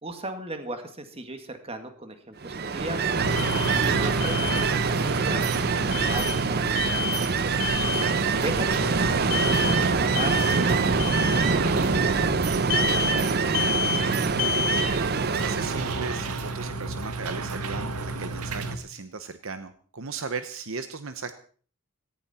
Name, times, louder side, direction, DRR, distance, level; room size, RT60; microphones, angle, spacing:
voice 1, 0.0-3.1 3.8-7.5 8.4-13.9, right 1 dB, 25° right, 7 dB, 2.1 m, -38 dB
Ocean, 2.4-16.5, right 4 dB, 45° right, 0.7 m, -25 dB
sound 1, 3.2-18.8, right 3 dB, 90° right, 1.7 m, -32 dB
Alarm, 3.4-3.8 4.2-4.7 5.9-6.4 6.8-7.2 7.6-8.1 9.3-9.8 10.2-10.6 11.0-11.4 12.7-13.2 13.5-14.0 14.4-14.9, left 8 dB, 50° left, 3.4 m, -29 dB
voice 2, 14.3-21.3, right 4 dB, 60° right, 10 dB, 1.0 m, -37 dB
18.0 x 15.0 x 4.4 m, 0.44 s
head